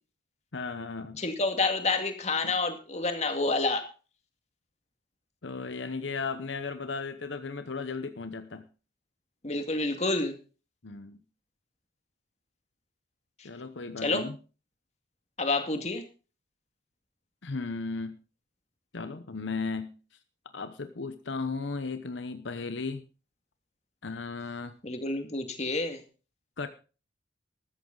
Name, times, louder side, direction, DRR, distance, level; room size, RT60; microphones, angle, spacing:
voice 1, 0.5-1.2 2.4-2.5 5.4-8.6 10.8-11.2 13.4-14.4 17.4-18.2 18.9-20.0 20.5-23.0 24.0-24.7 26.6-26.7, left 4 dB, 80° left, 10 dB, 0.9 m, -35 dB
voice 2, 1.2-3.9 9.4-10.3 14.0-14.2 15.4-16.0 24.8-26.0, left 3 dB, 35° left, 6 dB, 2.1 m, -28 dB
14.0 x 13.5 x 4.0 m, 0.36 s
head